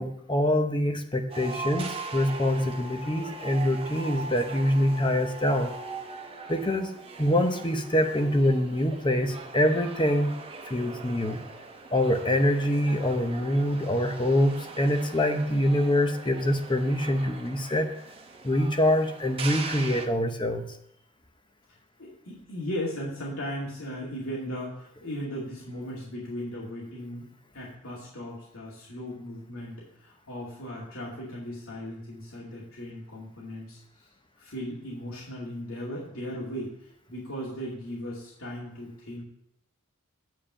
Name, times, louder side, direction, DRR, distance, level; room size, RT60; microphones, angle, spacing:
voice 1, 0.0-5.7 6.5-6.9 7.2-10.4 10.7-11.4 11.9-17.9 18.4-20.7, left 1 dB, 20° left, 6 dB, 0.8 m, -25 dB
sound 1, 1.3-20.1, right 3 dB, 25° right, 1.0 m, -41 dB
voice 2, 22.0-27.3 27.5-34.1 34.4-36.7 37.1-39.2, equal, 75° left, -5 dB, 2.5 m, -37 dB
8.7 x 4.8 x 7.6 m, 0.75 s
head